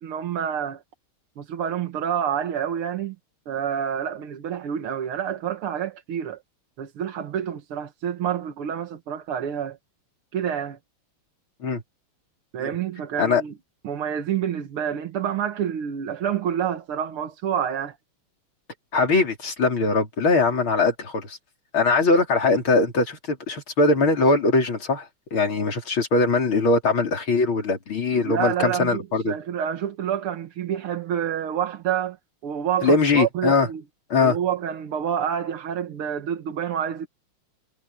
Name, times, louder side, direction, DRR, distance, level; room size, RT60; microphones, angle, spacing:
voice 1, 0.0-0.8 1.4-3.2 3.5-6.4 6.8-9.8 10.3-10.8 12.5-13.5 13.8-18.0 28.1-32.2 32.4-33.8 34.2-37.1, right 9 dB, 85° right, 2.3 m, -28 dB
voice 2, 18.9-21.4 21.7-29.3 32.8-33.7 34.1-34.4, left 3 dB, 70° left, 4.5 m, -21 dB
omnidirectional pair, 2.3 m